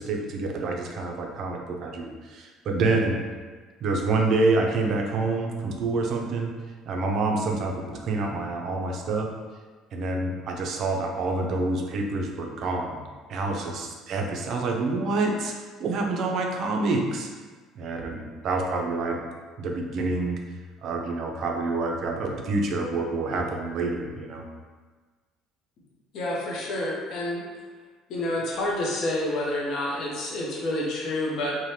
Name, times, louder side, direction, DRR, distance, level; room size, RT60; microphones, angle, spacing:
voice 1, 0.0-3.2 3.8-6.5 6.9-9.3 9.9-13.0 13.3-17.3 17.8-19.2 19.6-20.4 20.8-24.5, right 3 dB, 55° right, 2 dB, 0.4 m, -27 dB
voice 2, 26.1-27.5 28.1-31.6, left 1 dB, 60° left, -4 dB, 0.6 m, -28 dB
2.7 x 2.1 x 3.1 m, 1.4 s
cardioid pair, 130°, 0 cm